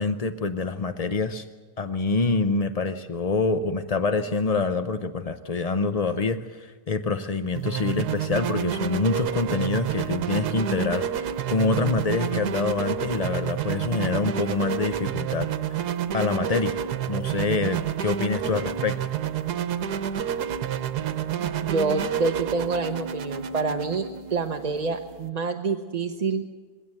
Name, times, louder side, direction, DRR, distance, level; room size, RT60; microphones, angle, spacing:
voice 1, 0.0-1.5 1.8-15.8 16.1-16.8 17.1-19.0, left 4 dB, 50° left, 10 dB, 0.4 m, -26 dB
sound 1, 7.5-25.3, right 9 dB, 85° right, 1.5 m, -29 dB
voice 2, 21.6-26.4, right 4 dB, 35° right, 5 dB, 0.8 m, -27 dB
21.5 x 17.0 x 7.8 m, 1.5 s
omnidirectional pair, 1.7 m